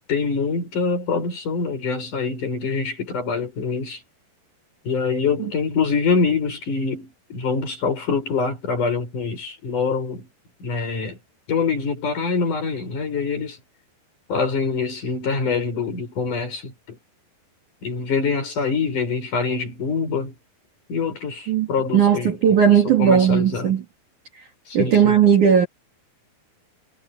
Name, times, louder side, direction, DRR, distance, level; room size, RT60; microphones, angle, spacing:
voice 1, 0.1-4.0 4.8-10.3 10.6-11.2 11.5-13.6 14.3-17.0 17.8-20.3 20.9-22.6 22.8-23.8 24.7-25.2, left 5 dB, 45° left, 7.6 m, -25 dB
voice 2, 21.9-23.8 24.7-25.7, right 8 dB, 50° right, 3.3 m, -16 dB
omnidirectional pair, 5.0 m